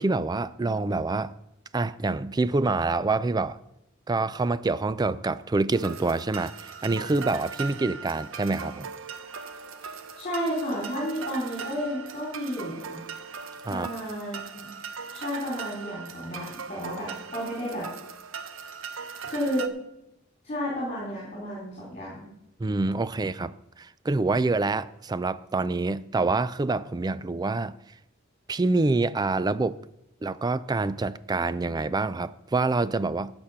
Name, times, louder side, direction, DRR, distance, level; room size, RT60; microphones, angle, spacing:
voice 1, 0.0-1.3 1.7-3.6 4.1-8.9 13.6-13.9 22.6-27.7 28.5-29.8 30.2-33.3, right 3 dB, 20° right, 0.3 m, -26 dB
sound 1, 5.7-19.7, right 6 dB, 70° right, 0.8 m, -39 dB
voice 2, 9.8-13.0 13.7-14.7 15.1-17.9 19.2-19.7 20.4-22.3, equal, 35° left, 4.0 m, -32 dB
15.5 x 6.1 x 5.7 m
head